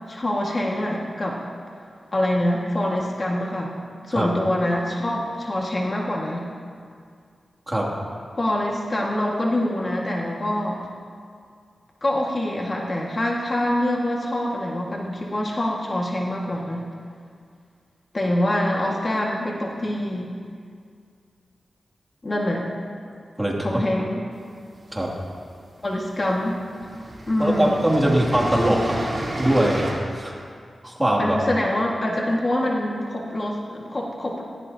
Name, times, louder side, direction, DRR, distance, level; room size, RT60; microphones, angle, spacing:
voice 1, 0.1-1.4 2.1-3.8 4.1-6.4 8.4-10.8 12.0-16.8 18.1-20.3 22.2-22.6 23.6-24.2 25.8-26.6 27.2-27.8 31.2-34.4, left 1 dB, 40° left, -2 dB, 1.9 m, -25 dB
voice 2, 23.4-23.8 24.9-25.1 27.4-29.1 29.4-30.4 30.8-31.4, right 1 dB, 15° right, -3 dB, 2.7 m, -22 dB
sound 1, 24.5-25.4 26.3-26.4 26.7-29.9, right 1 dB, 35° right, 3.8 m, -31 dB
17.5 x 16.5 x 2.9 m, 2.2 s
cardioid pair, 70°, 0 cm